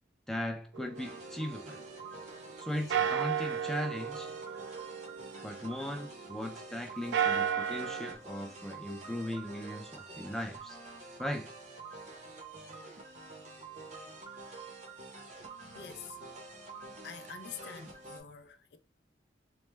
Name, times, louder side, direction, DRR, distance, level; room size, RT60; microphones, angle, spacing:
voice 1, 0.3-1.8 2.6-4.3 5.4-10.8 11.2-11.5, left 1 dB, ahead, 0.4 m, -38 dB
sound 1, 0.7-2.5 2.9-6.4 6.9-8.1, right 8 dB, 85° right, 0.3 m, -34 dB
sound 2, 0.9-18.2, right 3 dB, 40° right, 0.7 m, -48 dB
voice 2, 15.7-16.2 17.0-18.8, left 7 dB, 70° left, 0.4 m, -47 dB
3.1 x 2.0 x 3.2 m
head